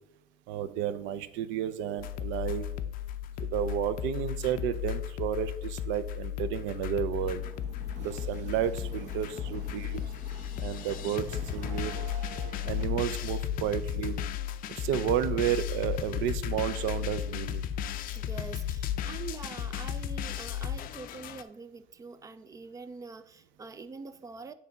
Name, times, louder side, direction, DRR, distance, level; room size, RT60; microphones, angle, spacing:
voice 1, 0.5-2.7 3.4-7.4 8.0-10.0 10.6-11.9 12.6-14.2 14.7-17.6, right 10 dB, 80° right, 13 dB, 0.6 m, -32 dB
sound 1, 2.0-21.4, left 10 dB, 50° left, 0.5 m, -35 dB
sound 2, 7.2-12.8, right 4 dB, 40° right, 1.0 m, -47 dB
voice 2, 18.1-24.5, right 4 dB, 20° right, 12 dB, 0.3 m, -44 dB
9.3 x 3.3 x 5.1 m, 0.86 s
cardioid pair, 155°, 19 cm